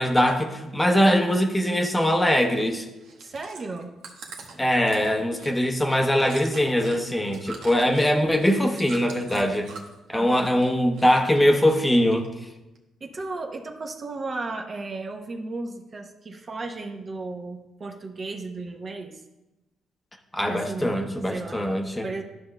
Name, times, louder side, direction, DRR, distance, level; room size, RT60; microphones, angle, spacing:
voice 1, 0.0-2.9 4.6-9.7 10.1-12.3 20.3-22.1, equal, 10° left, 4 dB, 0.7 m, -22 dB
Chewing mastication, 3.0-10.0 10.3-11.1 11.3-12.3 12.8-12.9, right 4 dB, 85° right, 1.0 m, -43 dB
voice 2, 3.2-3.9 10.1-10.5 13.0-19.2 20.5-21.0 21.3-21.6 22.0-22.2, right 3 dB, 40° right, 3 dB, 0.7 m, -34 dB
11.5 x 5.8 x 2.2 m, 1.0 s
cardioid pair, 90°, 0 cm